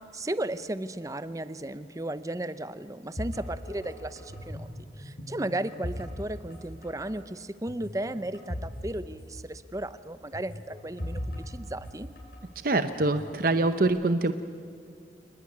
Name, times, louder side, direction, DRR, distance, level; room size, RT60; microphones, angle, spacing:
voice 1, 0.1-4.7 5.0-12.1, right 1 dB, 20° right, 13 dB, 0.7 m, -35 dB
sound 1, 3.2-4.7 5.0-6.6 6.8-7.1 7.7-8.8 9.0-9.1 10.3-12.4 13.0-13.8, equal, 55° left, 7.6 m, -38 dB
voice 2, 12.6-14.3, right 2 dB, 55° right, 9 dB, 0.8 m, -24 dB
28.5 x 20.5 x 9.7 m, 2.3 s
head